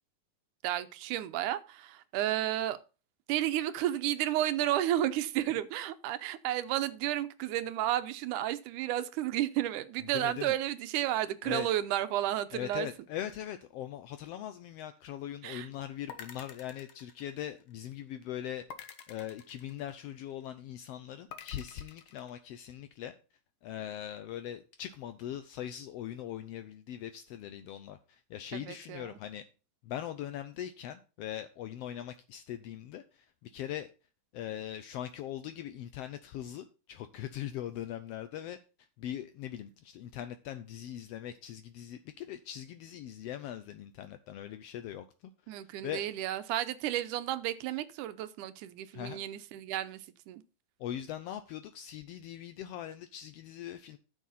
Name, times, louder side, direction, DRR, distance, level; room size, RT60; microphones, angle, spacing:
voice 1, 0.6-2.8 3.3-12.9 15.4-15.7 28.5-29.2 45.5-50.4, right 13 dB, 85° right, 2.2 m, -32 dB
voice 2, 10.1-10.5 11.4-11.7 12.5-18.6 19.1-23.1 23.6-29.4 29.8-33.9 34.3-38.6 39.0-45.0 45.6-46.0 48.9-49.2 50.8-54.0, left 11 dB, 85° left, 1.4 m, -41 dB
sound 1, 16.1-17.8 18.7-20.3 21.3-22.3, left 8 dB, 70° left, 1.2 m, -49 dB
12.0 x 6.4 x 4.2 m
omnidirectional pair, 3.5 m